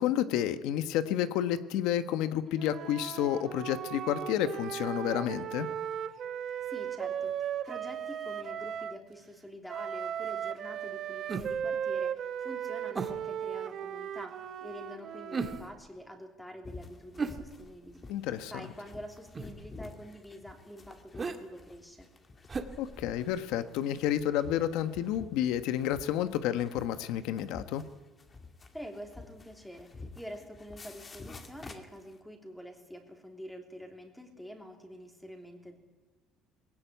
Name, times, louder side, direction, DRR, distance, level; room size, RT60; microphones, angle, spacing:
voice 1, 0.0-5.7 18.1-18.7 22.8-27.8, left 11 dB, 80° left, 11 dB, 1.3 m, -30 dB
Wind instrument woodwind instrument, 2.6-9.0 9.7-15.7, right 9 dB, 50° right, 1.4 m, -37 dB
voice 2, 6.6-18.0 18.5-22.1 28.7-35.8, equal, 5° left, 3 dB, 3.3 m, -46 dB
sound 1, 11.3-11.7 12.9-13.3 15.3-15.9 17.2-18.0 19.3-19.7 21.1-21.4 22.5-23.4 23.8-23.9, right 4 dB, 25° right, 1.9 m, -37 dB
sound 2, 16.6-32.2, left 3 dB, 25° left, 2.3 m, -50 dB
19.5 x 17.5 x 9.3 m, 1.3 s
cardioid pair, 125°, 0 cm